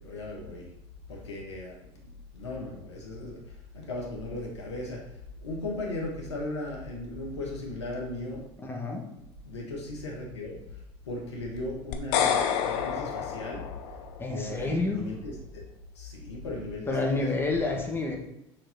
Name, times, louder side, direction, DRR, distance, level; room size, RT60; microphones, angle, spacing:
voice 1, 0.0-0.7 1.1-3.4 3.7-5.0 5.4-8.4 9.4-10.6 11.1-13.7 14.3-15.6 15.9-17.4, left 2 dB, 85° left, -2 dB, 1.3 m, -37 dB
voice 2, 8.6-9.0 14.2-15.0 16.9-18.2, left 3 dB, 15° left, 0 dB, 1.8 m, -29 dB
sound 1, 11.9-14.2, left 8 dB, 65° left, 0.8 m, -28 dB
6.6 x 4.0 x 4.0 m, 0.88 s
hypercardioid pair, 70°, 14 cm